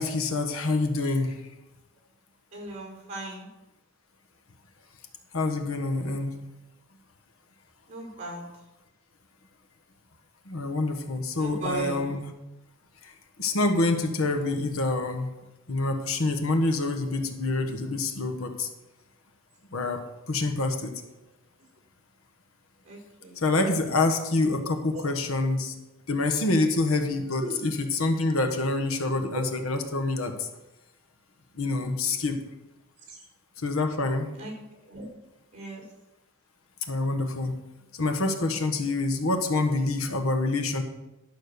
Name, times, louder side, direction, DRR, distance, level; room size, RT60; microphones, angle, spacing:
voice 1, 0.0-1.4 5.3-6.3 10.5-12.3 13.0-13.1 13.4-15.3 15.7-18.7 19.7-20.0 20.3-20.9 23.4-25.7 26.1-30.5 31.5-32.4 33.6-34.3 36.9-37.5 38.0-40.8, left 2 dB, 80° left, 6 dB, 1.3 m, -26 dB
voice 2, 2.5-3.5 7.9-8.4 11.4-12.1 22.8-23.4 24.9-25.0 27.4-27.6 29.3-29.6 33.1-33.2 34.4-34.5 34.9-35.1 35.5-35.8, right 1 dB, 35° right, 0 dB, 4.3 m, -37 dB
11.5 x 6.3 x 6.8 m, 0.99 s
head